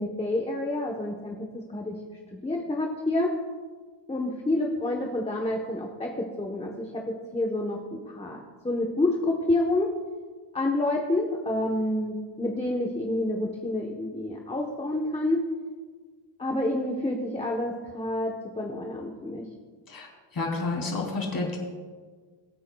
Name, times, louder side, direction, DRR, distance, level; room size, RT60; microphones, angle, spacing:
voice 1, 0.0-2.0 2.4-3.3 4.1-7.0 7.3-9.9 10.5-15.4 16.4-19.5, left 1 dB, 15° left, 0 dB, 1.0 m, -28 dB
voice 2, 20.3-21.6, left 3 dB, 45° left, -1 dB, 3.3 m, -30 dB
22.5 x 9.1 x 2.3 m, 1.5 s
wide cardioid pair, 130°, 46 cm